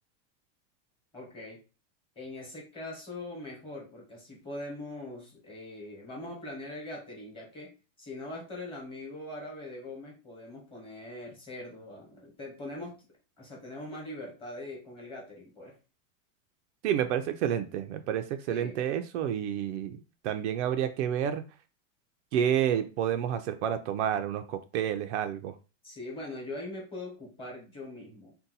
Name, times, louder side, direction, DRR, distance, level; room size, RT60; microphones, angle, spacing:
voice 1, 1.1-1.6 2.2-7.7 8.0-13.0 13.4-15.8 18.5-18.8 25.8-28.4, left 2 dB, 15° left, -2 dB, 1.1 m, -42 dB
voice 2, 16.8-20.0 20.2-21.4 22.3-25.6, right 9 dB, 65° right, 8 dB, 0.5 m, -29 dB
2.7 x 2.2 x 3.9 m, 0.32 s
supercardioid pair, 155°, 38 cm